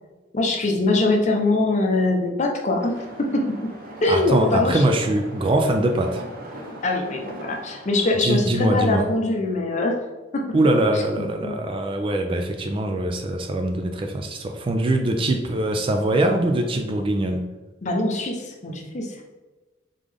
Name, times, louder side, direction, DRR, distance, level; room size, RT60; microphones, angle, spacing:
voice 1, 0.3-3.7 4.0-4.8 6.8-9.9 10.3-10.4 10.9-11.0 11.4-11.5 17.8-19.1, left 2 dB, 35° left, 1 dB, 0.6 m, -23 dB
sound 1, 2.8-8.1, right 1 dB, 45° right, 0.7 m, -40 dB
voice 2, 4.1-6.2 8.2-9.1 10.5-17.5, right 1 dB, 25° right, 4 dB, 0.3 m, -22 dB
3.7 x 3.6 x 3.4 m, 1.2 s
head